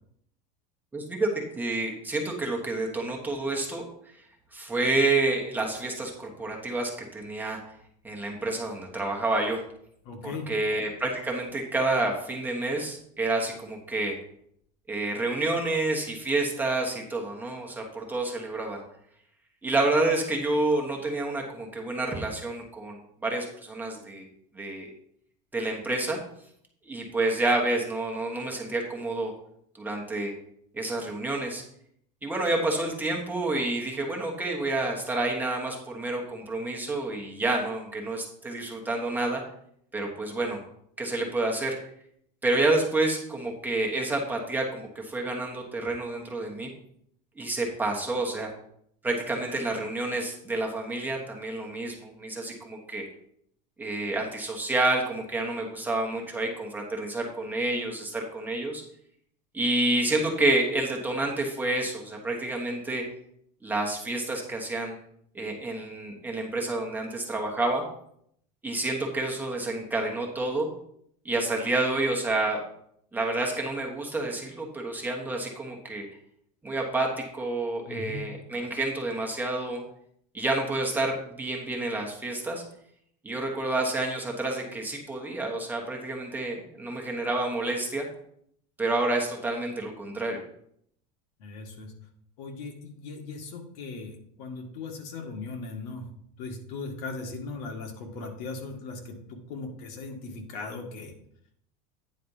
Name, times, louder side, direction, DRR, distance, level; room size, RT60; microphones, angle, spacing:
voice 1, 0.9-3.8 4.5-7.6 8.0-9.6 10.2-14.1 14.9-18.8 19.6-24.3 24.5-24.9 25.5-26.2 26.8-29.3 29.8-30.3 30.7-31.6 32.2-39.4 39.9-40.6 41.0-41.8 42.4-46.7 47.4-48.5 49.0-53.0 53.8-58.8 59.5-63.0 63.6-64.9 65.3-67.8 68.6-70.7 71.2-72.6 73.1-76.0 76.6-79.8 80.3-82.6 83.2-88.1 88.8-90.4, right 2 dB, 10° right, -1 dB, 1.2 m, -29 dB
voice 2, 10.1-10.5 77.9-78.3 91.4-91.9 92.4-96.1 96.4-101.1, left 3 dB, 70° left, 3 dB, 1.7 m, -38 dB
9.4 x 4.2 x 5.5 m, 0.69 s
supercardioid pair, 155°, 21 cm